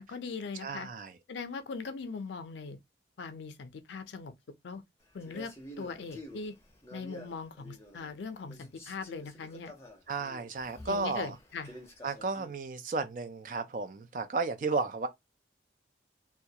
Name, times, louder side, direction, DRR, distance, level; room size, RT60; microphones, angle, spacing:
voice 1, 0.0-0.9 1.3-2.8 3.2-4.3 4.6-4.8 5.1-6.5 6.9-9.8 10.9-11.7, left 4 dB, 85° left, 0.4 m, -40 dB
voice 2, 0.6-1.1 10.1-11.4 12.0-15.1, right 4 dB, 45° right, 0.4 m, -33 dB
Male speech man speaking, 5.2-8.2 8.5-12.6, equal, 15° left, 0.5 m, -49 dB
2.3 x 2.1 x 2.7 m
head